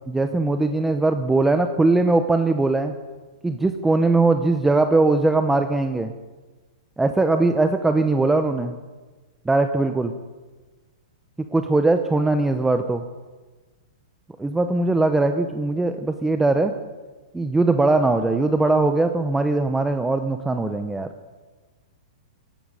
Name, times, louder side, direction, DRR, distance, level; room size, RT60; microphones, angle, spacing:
voice 1, 0.1-2.9 3.4-6.1 7.0-8.7 9.5-10.1 11.5-13.0 14.4-16.7 17.3-21.1, right 2 dB, 5° right, 7 dB, 0.6 m, -20 dB
16.0 x 11.5 x 5.4 m, 1.3 s
hypercardioid pair, 145°, 4 cm